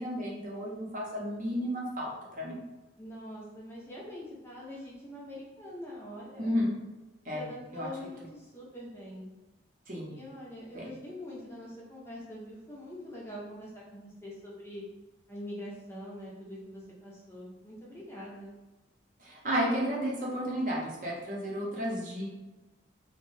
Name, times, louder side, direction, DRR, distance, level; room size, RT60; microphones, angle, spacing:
voice 1, 0.0-2.6 6.4-6.8 7.2-7.5 7.7-7.9 9.9-10.1 10.7-10.9 19.2-22.3, equal, 45° right, -4 dB, 0.6 m, -32 dB
voice 2, 3.0-6.6 7.3-9.3 10.1-14.8 15.3-18.5, left 1 dB, 15° left, -5 dB, 0.5 m, -44 dB
2.5 x 2.1 x 3.1 m, 1.1 s
head